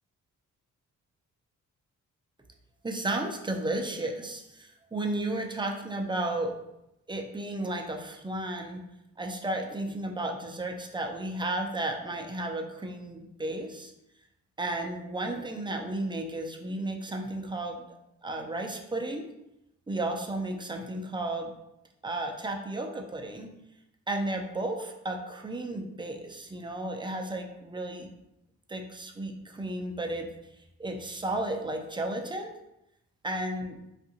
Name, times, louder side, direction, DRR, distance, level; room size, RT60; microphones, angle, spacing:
voice 1, 2.8-6.6 7.1-8.8 9.2-13.9 14.6-17.8 18.2-19.3 19.9-21.5 22.0-23.5 24.1-28.1 28.7-30.3 30.8-32.5 33.2-33.8, right 2 dB, 15° right, 1 dB, 0.4 m, -33 dB
2.5 x 2.4 x 2.8 m, 0.86 s
supercardioid pair, 50°, 35 cm